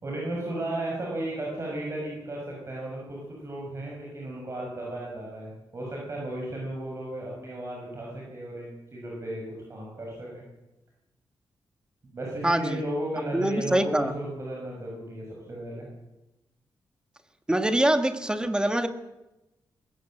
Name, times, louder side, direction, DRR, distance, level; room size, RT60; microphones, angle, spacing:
voice 1, 0.0-10.4 12.1-15.8, right 1 dB, 35° right, -3 dB, 6.3 m, -35 dB
voice 2, 12.4-12.8 13.3-14.1 17.5-18.9, right 1 dB, 10° right, 8 dB, 1.7 m, -24 dB
20.5 x 17.5 x 7.8 m, 0.99 s
wide cardioid pair, 115°, 8 cm